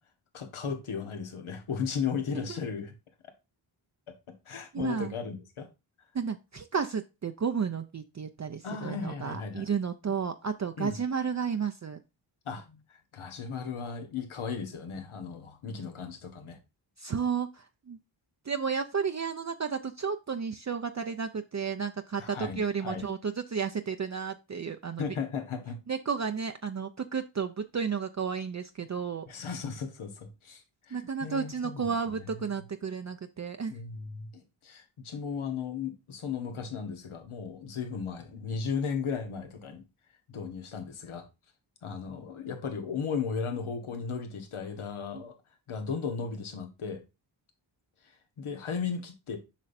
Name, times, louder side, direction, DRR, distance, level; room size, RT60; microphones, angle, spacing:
voice 1, 0.3-2.9 4.3-5.7 8.6-9.7 10.8-11.0 12.4-16.6 22.2-23.1 25.0-25.8 29.3-31.9 33.7-39.8 40.3-41.3 41.8-45.4 45.7-47.0 48.0-49.4, left 6 dB, 85° left, 1.3 m, -36 dB
voice 2, 4.7-5.1 6.1-12.0 17.0-18.0 18.4-25.0 25.9-29.3 30.9-33.8, right 6 dB, 35° right, 0.6 m, -32 dB
7.4 x 5.6 x 2.6 m
cardioid pair, 45°, 48 cm